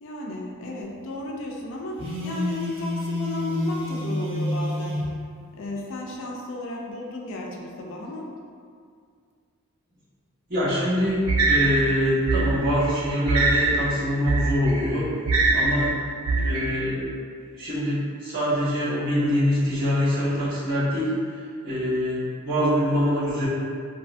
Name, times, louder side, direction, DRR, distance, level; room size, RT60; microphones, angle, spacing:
voice 1, 0.0-5.0 5.6-8.3, left 2 dB, 60° left, -1 dB, 0.3 m, -34 dB
Telephone, 2.0-5.1, left 1 dB, 25° right, 0.6 m, -28 dB
voice 2, 10.5-15.1 15.5-15.9 16.4-17.1 17.5-23.5, equal, 45° right, -13 dB, 1.2 m, -24 dB
sound 1, 11.3-16.7, right 3 dB, 75° right, 0.3 m, -23 dB
2.7 x 2.2 x 2.5 m, 2.2 s
head